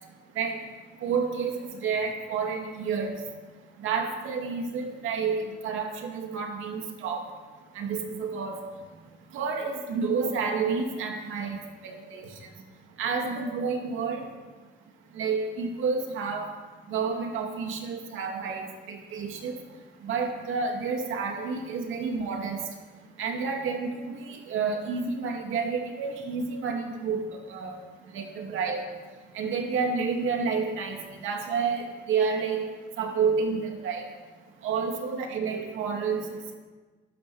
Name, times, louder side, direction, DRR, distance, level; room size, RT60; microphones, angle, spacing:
voice 1, 1.0-3.2 3.8-7.2 7.8-8.7 9.3-11.6 11.8-12.3 13.0-14.3 15.2-16.5 16.9-19.6 20.0-22.6 23.2-27.8 28.1-28.8 29.3-32.7 33.0-34.1 34.6-36.3, right 5 dB, 85° right, 3 dB, 2.4 m, -30 dB
12.5 x 12.0 x 7.1 m, 1.3 s
cardioid pair, 90°, 20 cm